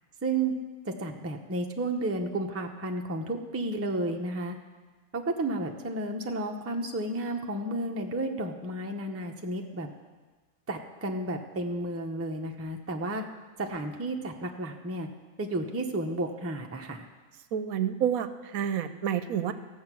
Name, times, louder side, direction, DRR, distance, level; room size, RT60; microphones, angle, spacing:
voice 1, 0.2-0.5 0.8-4.6 5.1-9.9 10.7-13.2 13.6-15.1 15.4-17.1, right 2 dB, 15° right, 3 dB, 0.5 m, -32 dB
voice 2, 17.5-19.5, right 9 dB, 75° right, 11 dB, 1.0 m, -29 dB
14.5 x 7.4 x 6.0 m, 1.3 s
omnidirectional pair, 1.6 m